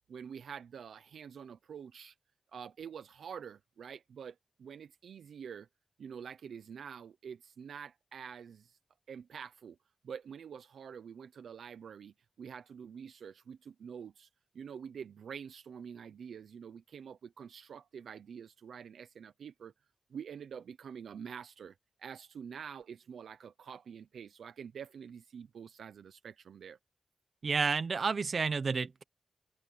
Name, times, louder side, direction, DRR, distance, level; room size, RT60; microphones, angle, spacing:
voice 1, 0.1-2.1 2.5-5.7 6.0-8.8 9.1-9.8 10.0-14.3 14.5-19.7 20.1-26.8, right 7 dB, 90° right, 0.7 m, -47 dB
voice 2, 27.4-29.0, right 4 dB, 65° right, 1.1 m, -30 dB
cardioid pair, 45°, 0 cm